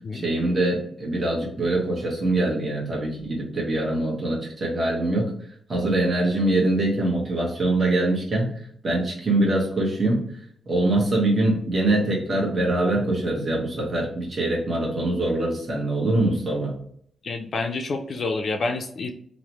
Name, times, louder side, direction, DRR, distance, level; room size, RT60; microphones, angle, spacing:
voice 1, 0.1-5.3 5.7-8.5 8.8-10.2 10.7-16.7, right 2 dB, 45° right, -3 dB, 1.0 m, -23 dB
voice 2, 17.2-19.1, left 3 dB, 60° left, 3 dB, 0.3 m, -28 dB
3.1 x 2.0 x 2.8 m, 0.65 s
cardioid pair, 70°, 0 cm